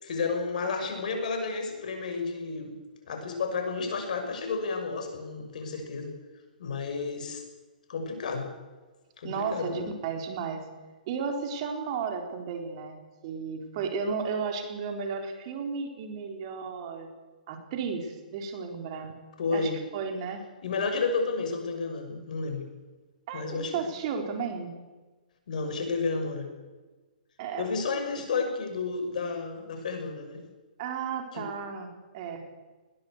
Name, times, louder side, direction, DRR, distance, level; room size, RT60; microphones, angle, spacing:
voice 1, 0.0-2.7 3.1-6.1 6.6-7.4 7.9-8.5 9.2-9.8 19.4-19.8 20.6-22.7 23.3-23.7 25.5-26.5 27.5-30.4 31.3-31.4, left 4 dB, 65° left, 5 dB, 6.5 m, -31 dB
voice 2, 9.2-10.7 11.1-17.1 17.5-19.1 19.5-20.4 23.3-24.7 27.4-27.7 30.8-31.9 32.1-32.4, right 5 dB, 40° right, 4 dB, 4.2 m, -34 dB
21.0 x 18.0 x 8.2 m, 1.3 s
hypercardioid pair, 135°, 5 cm